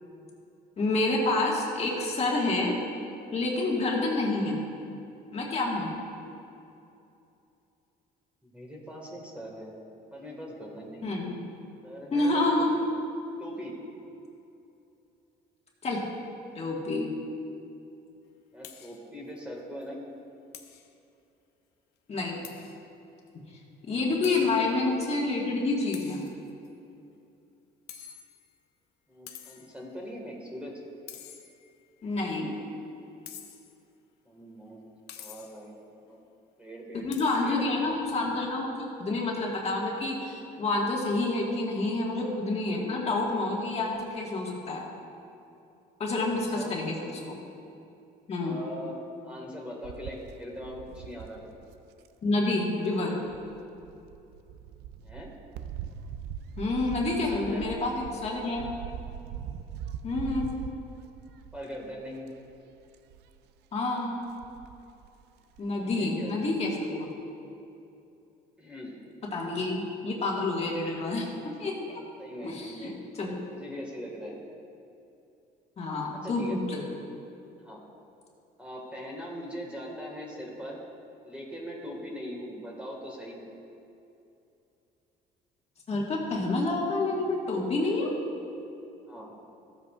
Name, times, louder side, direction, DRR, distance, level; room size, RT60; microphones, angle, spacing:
voice 1, 0.8-2.8 3.3-4.6 5.3-5.9 11.0-11.4 12.1-12.8 15.8-16.0 16.5-17.1 22.1-22.4 23.8-26.2 32.0-32.6 36.9-38.7 39.0-44.8 46.0-47.0 47.3-47.4 48.3-48.6 52.2-53.1 56.6-58.6 60.0-60.5 63.7-64.2 65.6-67.1 69.3-71.3 71.6-72.0 72.4-73.4 75.8-76.8 85.9-88.1, left 2 dB, 40° left, -3 dB, 1.6 m, -28 dB
voice 2, 8.4-9.7 10.1-11.1 11.8-12.8 13.4-13.8 18.5-20.1 24.2-24.5 29.1-30.8 34.2-36.2 36.6-37.7 46.3-46.7 48.4-49.0 49.2-51.4 55.0-55.3 57.2-57.9 61.5-62.4 65.7-66.3 68.6-69.0 72.2-72.9 73.5-74.4 76.1-76.6 77.6-77.8 78.6-80.8 81.2-83.4 89.1-89.3, equal, 5° right, -2 dB, 1.7 m, -41 dB
sound 1, 18.6-19.0 19.4-19.5 19.8-19.9 20.5-20.9 22.4-22.8 23.3-23.4 24.2-24.6 25.9-26.7 27.9-28.6 29.3-29.8 31.1-31.8 33.2-33.8 35.1-35.7 37.1-37.5, left 9 dB, 75° left, 0.8 m, -47 dB
sound 2, 49.8-52.1 53.3-61.9 62.3-62.6 62.9-63.4 64.2-65.1 65.6-65.7 65.9-66.0, right 8 dB, 80° right, 0.4 m, -41 dB
14.5 x 8.0 x 2.4 m, 2.7 s
cardioid pair, 110°, 17 cm